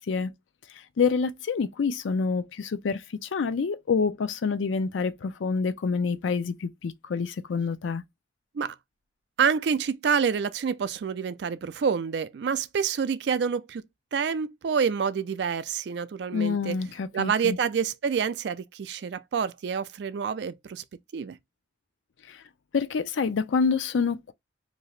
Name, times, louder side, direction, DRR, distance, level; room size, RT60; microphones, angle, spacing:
voice 1, 1.0-8.0 16.3-17.6 22.3-22.4 22.7-24.3, left 5 dB, 85° left, 0.4 m, -27 dB
voice 2, 9.4-13.8 14.1-16.8 17.1-20.8 21.1-21.4, right 6 dB, 60° right, 0.3 m, -27 dB
2.8 x 2.6 x 3.1 m
head